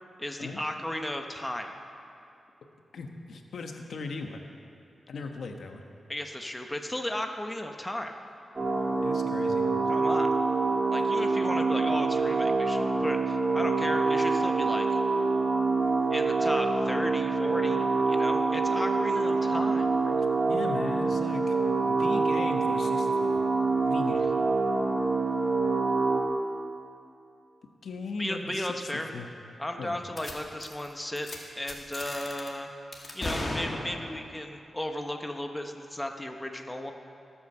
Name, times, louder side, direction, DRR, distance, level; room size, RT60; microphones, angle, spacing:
voice 1, 0.2-1.7 6.1-8.1 9.9-10.3 10.9-15.0 16.1-20.3 28.2-29.1 29.6-31.3 31.6-32.7 33.1-36.9, left 1 dB, 10° left, 4 dB, 1.0 m, -35 dB
voice 2, 2.9-4.4 5.1-5.8 9.0-9.6 20.5-23.4 23.9-24.3 27.8-28.9 29.1-29.3 29.8-30.0, left 3 dB, 80° left, 4 dB, 1.1 m, -38 dB
sound 1, 8.6-26.2, right 3 dB, 40° right, 2.1 m, -26 dB
sound 2, 30.2-30.3 30.6-30.9 31.2-31.4 31.7-32.5 32.9-34.2, left 1 dB, 30° left, 2.1 m, -35 dB
18.0 x 8.5 x 6.8 m, 2.6 s
wide cardioid pair, 115°, 0 cm